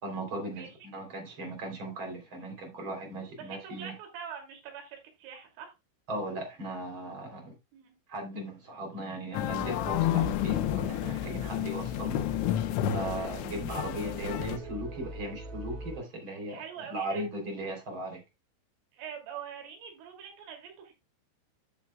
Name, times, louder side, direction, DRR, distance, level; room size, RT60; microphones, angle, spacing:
voice 1, 0.0-3.9 6.1-7.5 8.1-12.2 12.9-16.6 16.9-18.2, right 1 dB, 30° right, 3.2 m, -37 dB
voice 2, 3.4-5.7 7.7-8.0 13.0-13.3 16.5-17.2 18.9-20.9, right 8 dB, 85° right, 5.1 m, -44 dB
sound 1, 9.3-14.6, left 11 dB, 80° left, 3.1 m, -30 dB
sound 2, 9.5-16.0, right 2 dB, 65° right, 4.4 m, -43 dB
12.5 x 7.3 x 2.3 m
omnidirectional pair, 5.6 m